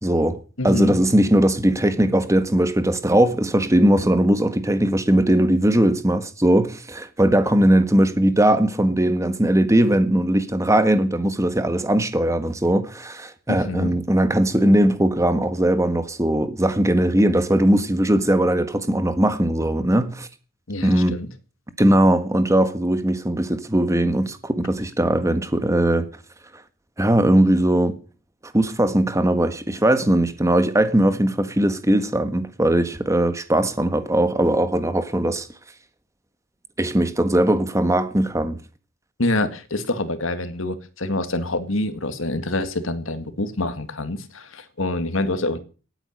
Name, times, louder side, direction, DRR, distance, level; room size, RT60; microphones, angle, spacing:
voice 1, 0.0-0.4 0.6-20.3 20.8-21.2 21.8-26.1 27.0-28.0 28.5-35.5 36.8-38.6, right 1 dB, 15° right, 1.5 m, -19 dB
voice 2, 0.6-1.0 13.5-13.9 20.7-21.3 39.2-45.6, left 2 dB, 80° left, 2.0 m, -26 dB
18.0 x 9.1 x 6.5 m
head